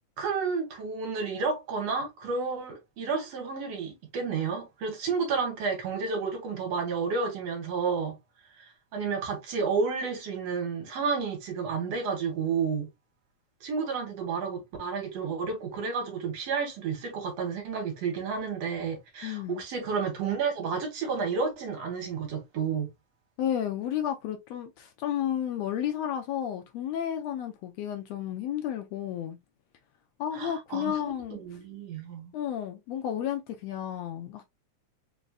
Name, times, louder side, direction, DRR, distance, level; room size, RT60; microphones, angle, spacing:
voice 1, 0.2-8.2 8.9-12.9 13.6-22.9 30.3-30.9 31.3-32.3, right 5 dB, 65° right, 2.3 m, -31 dB
voice 2, 19.2-19.6 23.4-29.4 30.2-31.4 32.3-34.4, left 10 dB, 80° left, 1.6 m, -32 dB
5.2 x 3.1 x 2.3 m
omnidirectional pair, 3.4 m